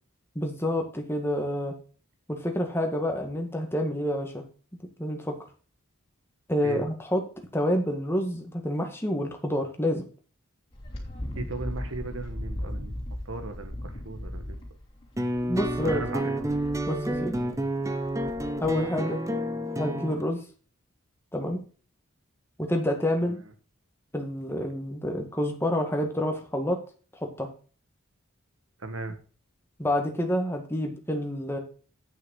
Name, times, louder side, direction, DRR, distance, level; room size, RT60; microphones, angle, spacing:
voice 1, 0.3-1.7 2.3-4.4 5.0-5.4 6.5-7.2 7.5-10.0 15.5-16.0 16.9-17.3 18.6-19.2 19.7-20.4 21.3-21.6 22.6-23.4 24.1-26.8 27.2-27.5 29.8-31.6, left 1 dB, 10° left, 3 dB, 1.7 m, -28 dB
Wind, 10.7-18.9, left 1 dB, 25° left, 3.2 m, -38 dB
voice 2, 11.3-12.9 13.2-14.6 15.8-16.5 23.2-23.4 28.8-29.2, right 2 dB, 70° right, 8 dB, 1.6 m, -36 dB
sound 1, 15.2-20.2, right 1 dB, 15° right, 0.9 m, -30 dB
9.1 x 6.4 x 5.4 m, 0.38 s
head